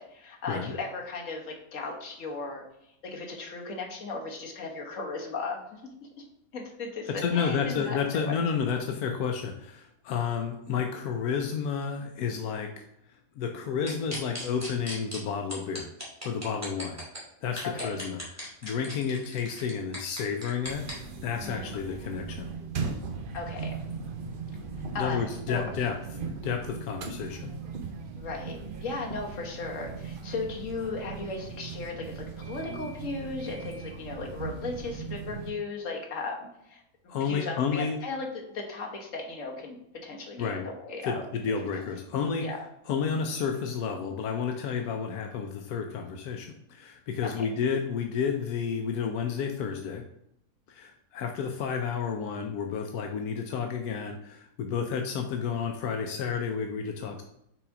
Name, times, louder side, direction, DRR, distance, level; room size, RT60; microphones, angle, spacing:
voice 1, 0.0-2.6 3.0-6.1 6.5-8.4 17.6-17.9 21.4-21.7 23.3-23.7 24.9-25.6 28.2-41.2 41.7-41.8 42.4-42.7 47.2-47.4, left 3 dB, 60° left, 0 dB, 1.7 m, -36 dB
voice 2, 7.2-12.8 13.4-15.9 16.2-17.0 17.4-22.5 25.0-26.0 26.4-27.5 37.1-38.0 40.4-40.6 41.0-42.4 42.9-50.0 50.7-57.2, left 6 dB, 85° left, 3 dB, 1.2 m, -31 dB
sound 1, 13.9-15.2 15.5-17.2 17.6-20.9, equal, 10° right, 2.3 m, -37 dB
sound 2, 20.6-35.5, right 5 dB, 50° right, 0.7 m, -38 dB
5.9 x 4.0 x 4.9 m, 0.79 s
omnidirectional pair, 1.6 m